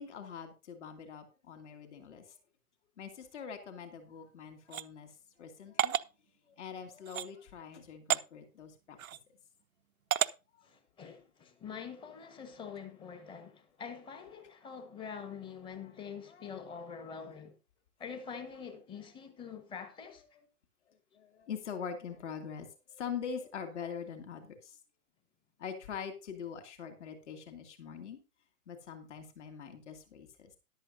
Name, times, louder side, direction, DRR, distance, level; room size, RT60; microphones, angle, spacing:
voice 1, 0.0-2.2 3.0-5.1 5.4-6.0 6.6-9.0 10.5-10.7 16.3-16.5 16.9-17.2 21.1-24.8 25.6-28.2 28.7-30.5, left 7 dB, 50° left, 2.7 m, -43 dB
sound 1, 4.7-4.9 5.8-6.1 7.1-7.3 8.1-8.2 9.0-9.2 10.1-10.3, right 10 dB, 65° right, 0.6 m, -30 dB
voice 2, 10.6-17.5 18.0-20.2, left 6 dB, 10° left, 1.3 m, -45 dB
13.5 x 11.5 x 2.7 m
figure-of-eight pair, 130°, 45 cm